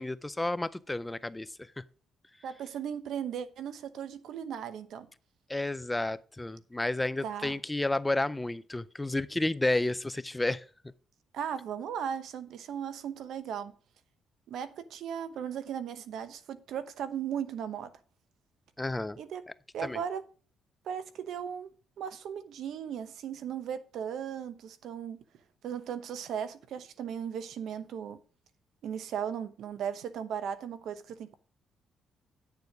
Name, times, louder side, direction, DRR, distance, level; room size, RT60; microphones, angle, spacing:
voice 1, 0.0-1.5 1.8-1.9 5.5-10.6 18.8-19.2 19.8-20.0, left 2 dB, 15° left, 0.4 m, -31 dB
voice 2, 2.4-5.1 7.2-7.6 11.3-13.7 14.5-17.9 19.2-19.4 19.7-20.2 20.8-21.7 22.0-25.2 25.6-28.2 28.8-31.4, right 8 dB, 75° right, 0.9 m, -37 dB
9.7 x 6.8 x 4.8 m
cardioid pair, 90°, 0 cm